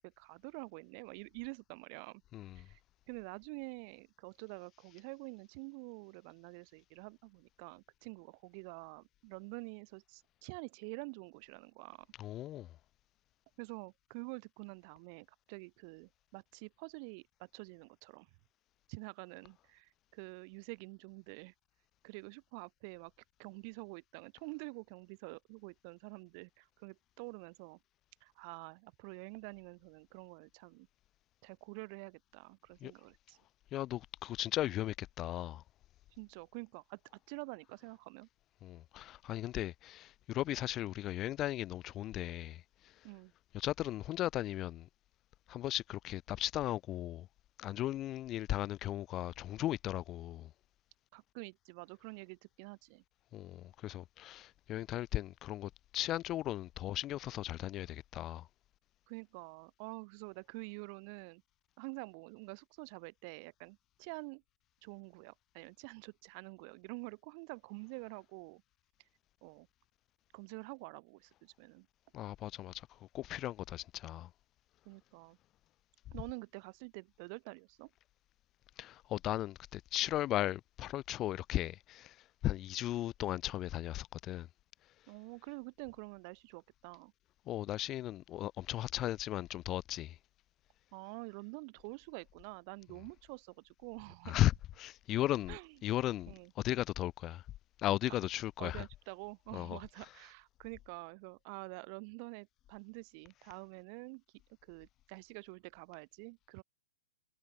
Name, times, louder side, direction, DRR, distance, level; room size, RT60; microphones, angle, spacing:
voice 1, 0.0-2.2 2.5-2.8 3.1-12.1 13.6-18.3 18.9-21.5 22.0-23.1 23.4-27.8 28.2-30.9 31.4-33.4 36.1-37.0 37.3-38.3 43.0-43.3 51.1-53.0 59.1-61.4 61.8-64.4 64.8-68.6 69.4-69.7 70.3-71.9 74.9-75.4 76.1-77.9 85.1-87.1 90.9-94.4 95.5-95.8 96.3-96.5 98.6-104.2 104.6-106.6, right 34 dB, 45° right, 2.3 m, -48 dB
voice 2, 12.2-12.7 32.8-32.9 33.7-35.6 38.6-42.6 43.5-44.9 45.5-47.3 47.6-50.5 53.3-58.4 72.1-72.9 73.1-74.3 78.8-82.1 82.4-84.5 87.5-90.1 94.3-94.5 94.8-95.6 95.8-96.3 96.6-97.4 97.8-98.8 99.5-99.8, left 14 dB, 30° left, 0.3 m, -36 dB
hypercardioid pair, 130°, 0 cm